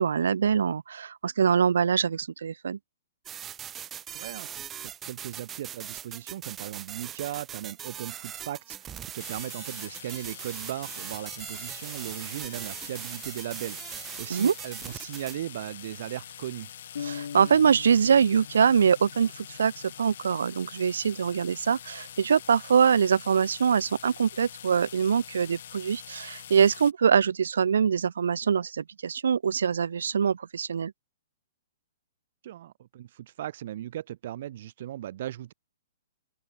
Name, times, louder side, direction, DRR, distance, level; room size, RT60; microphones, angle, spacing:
voice 1, 0.0-2.8 14.3-14.5 17.0-30.9, right 7 dB, 90° right, 0.7 m, -24 dB
sound 1, 3.3-15.4, right 10 dB, 15° right, 1.1 m, -40 dB
voice 2, 4.1-16.7 32.4-35.5, right 12 dB, 45° right, 0.6 m, -37 dB
sound 2, 9.2-26.9, left 10 dB, 55° left, 1.7 m, -45 dB
sound 3, 16.9-20.7, left 7 dB, 75° left, 0.6 m, -42 dB
open air
hypercardioid pair, 170°, 0 cm